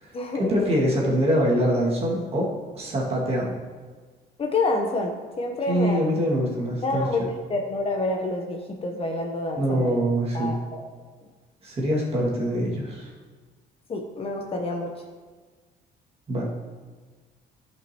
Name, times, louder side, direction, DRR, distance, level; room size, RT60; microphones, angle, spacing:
voice 1, 0.4-2.5 2.7-3.5 5.7-7.3 9.6-10.5 11.6-13.1 16.3-16.4, equal, 35° right, -4 dB, 2.2 m, -24 dB
voice 2, 4.4-6.1 6.8-10.0 10.3-10.8 13.9-14.9, left 2 dB, 35° left, 2 dB, 1.0 m, -28 dB
11.5 x 5.3 x 3.0 m, 1.4 s
cardioid pair, 110°, 17 cm